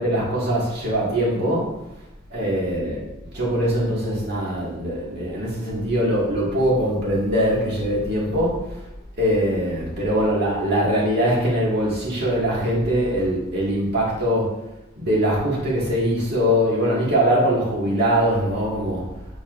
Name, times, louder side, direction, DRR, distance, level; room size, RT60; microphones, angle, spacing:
voice 1, 0.0-1.7 2.3-3.0 3.3-8.8 9.2-14.5 15.0-19.0, equal, 55° right, -6 dB, 2.0 m, -22 dB
8.7 x 4.2 x 2.6 m, 0.92 s
head